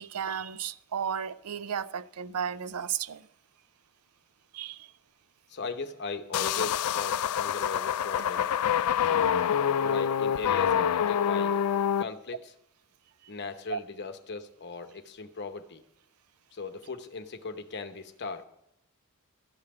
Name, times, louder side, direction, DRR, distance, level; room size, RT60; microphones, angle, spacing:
voice 1, 0.0-3.3 4.5-4.9 13.7-13.8, right 8 dB, 85° right, 0.5 m, -34 dB
voice 2, 5.5-8.5 9.0-9.4 9.8-11.6 12.0-12.5 13.3-15.8 16.5-18.4, left 4 dB, 50° left, 0.9 m, -38 dB
sound 1, 6.3-12.0, left 8 dB, 90° left, 0.4 m, -26 dB
13.5 x 5.7 x 8.7 m
head